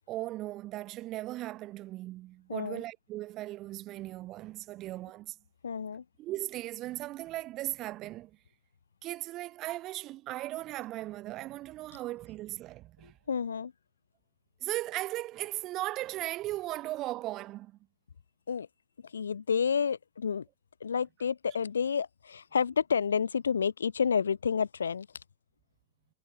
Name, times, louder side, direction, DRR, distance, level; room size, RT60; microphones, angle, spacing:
voice 1, 0.1-5.4 6.2-8.4 9.0-13.1 14.6-17.8, right 16 dB, 35° right, 2.6 m, -37 dB
voice 2, 2.5-2.8 5.6-6.0 13.0-13.7 18.5-18.7 19.1-20.5 20.8-25.1, left 6 dB, 70° left, 1.0 m, -30 dB
figure-of-eight pair, 90°, 0 cm